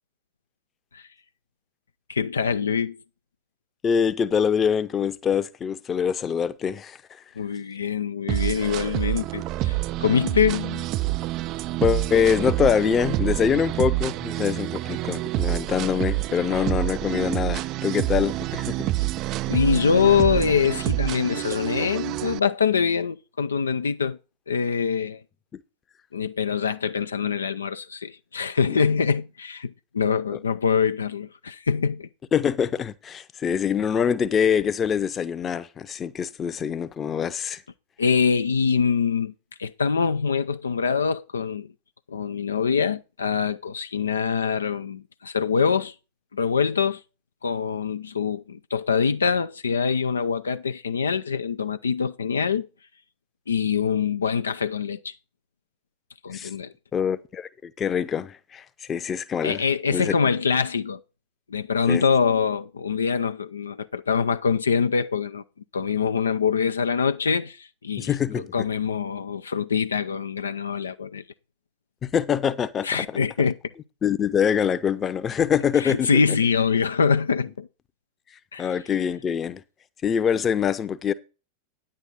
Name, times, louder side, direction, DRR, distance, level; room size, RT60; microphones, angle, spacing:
voice 1, 2.1-3.0 7.4-10.9 19.5-24.2 24.5-25.2 26.1-32.1 38.0-39.3 39.6-41.7 42.1-45.9 46.3-47.0 47.4-52.7 53.5-55.1 56.2-56.7 59.4-61.0 61.5-65.4 65.7-68.1 68.5-71.2 72.8-73.6 75.8-77.7 78.5-78.7, left 6 dB, 70° left, 0.5 m, -24 dB
voice 2, 3.8-7.0 11.8-19.0 25.5-25.6 28.7-28.8 32.3-37.6 56.3-56.5 56.9-59.6 59.9-60.1 61.9-62.0 68.0-68.7 72.0-72.9 74.0-76.2 78.6-79.6 80.0-81.1, left 7 dB, 25° left, 0.8 m, -24 dB
sound 1, 8.3-22.4, right 17 dB, 40° right, 0.4 m, -27 dB
9.8 x 8.9 x 3.9 m
figure-of-eight pair, 90°, 0 cm